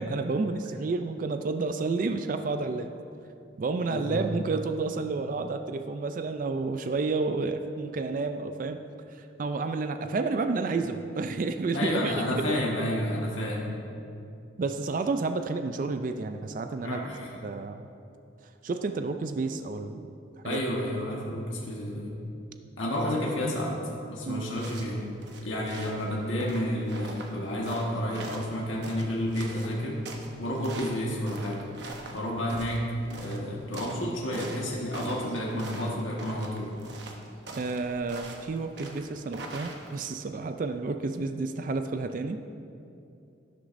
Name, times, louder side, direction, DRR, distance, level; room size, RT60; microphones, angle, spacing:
voice 1, 0.0-2.9 3.6-8.8 9.1-12.4 14.6-17.1 17.4-17.9 18.6-20.1 20.4-20.6 24.3-24.5 37.6-42.4, right 3 dB, 45° right, 8 dB, 0.3 m, -30 dB
voice 2, 3.9-4.2 11.7-13.7 16.8-17.3 20.4-22.1 22.8-23.8 24.1-25.0 25.4-30.0 30.4-31.6 32.1-36.7, equal, 80° left, -3 dB, 1.4 m, -30 dB
sound 1, 24.4-40.2, right 2 dB, 60° right, 0.9 m, -43 dB
11.5 x 11.0 x 2.6 m, 2.6 s
head